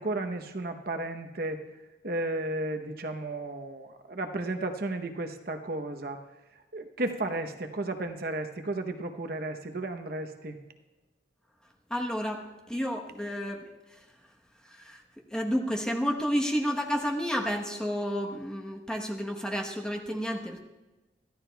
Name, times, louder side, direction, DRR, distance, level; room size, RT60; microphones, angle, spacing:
voice 1, 0.0-1.6 2.0-6.2 6.7-10.6, right 2 dB, 50° right, 6 dB, 0.9 m, -33 dB
voice 2, 11.9-13.6 14.7-15.0 15.3-20.6, equal, 5° left, 0 dB, 1.0 m, -31 dB
24.0 x 14.5 x 2.3 m, 1.1 s
head